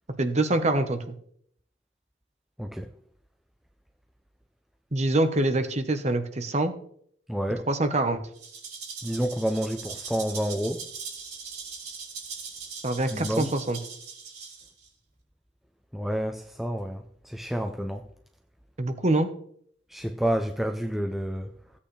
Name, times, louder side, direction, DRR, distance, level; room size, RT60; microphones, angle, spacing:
voice 1, 0.2-1.0 4.9-6.7 7.7-8.2 12.8-13.8 18.8-19.3, right 2 dB, 35° right, 1.1 m, -25 dB
voice 2, 7.3-7.7 9.0-10.8 13.1-13.5 15.9-18.0 19.9-21.5, equal, ahead, 0.5 m, -29 dB
Rattle (instrument), 8.3-14.9, right 5 dB, 55° right, 3.8 m, -40 dB
16.0 x 8.6 x 3.3 m
head